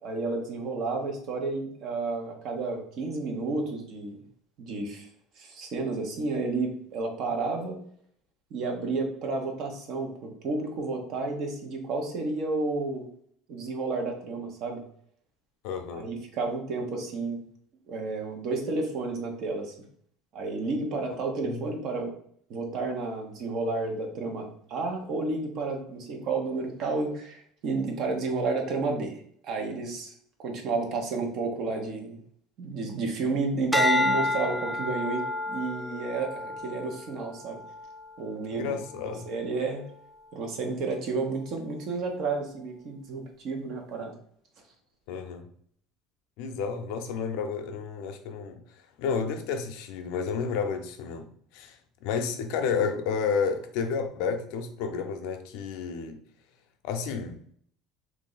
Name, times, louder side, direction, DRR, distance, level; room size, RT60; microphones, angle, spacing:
voice 1, 0.0-4.2 4.6-5.1 5.4-7.8 8.5-13.1 13.5-14.8 15.9-17.4 17.9-19.7 20.3-22.1 22.5-30.1 30.4-32.2 32.6-37.6 38.2-38.8 39.3-39.8 40.3-44.1, right 3 dB, 55° right, 3 dB, 0.9 m, -31 dB
voice 2, 15.6-16.1 21.5-21.6 38.5-39.3 45.1-45.5 46.4-48.6 49.0-51.3 51.5-56.2 56.8-57.4, left 6 dB, 75° left, 6 dB, 0.5 m, -31 dB
sound 1, 33.7-38.2 38.7-39.1, left 1 dB, ahead, 0.3 m, -29 dB
3.1 x 2.6 x 3.9 m, 0.63 s
supercardioid pair, 120°, 0 cm